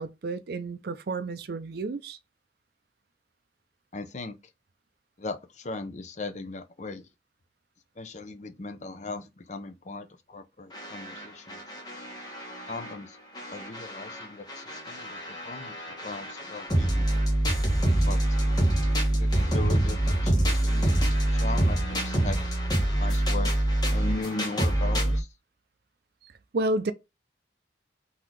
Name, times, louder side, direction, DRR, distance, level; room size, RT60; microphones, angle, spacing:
voice 1, 0.0-2.2 26.2-26.9, right 2 dB, 55° right, 0.5 m, -31 dB
voice 2, 3.9-4.4 5.2-7.1 8.0-11.6 12.7-13.2 13.5-17.1 18.0-18.4 19.1-22.4 23.0-23.6 23.9-25.3, left 3 dB, 40° left, 0.6 m, -38 dB
sound 1, 10.7-12.9 13.3-25.2, right 1 dB, 20° left, 1.2 m, -26 dB
4.0 x 2.8 x 4.6 m
head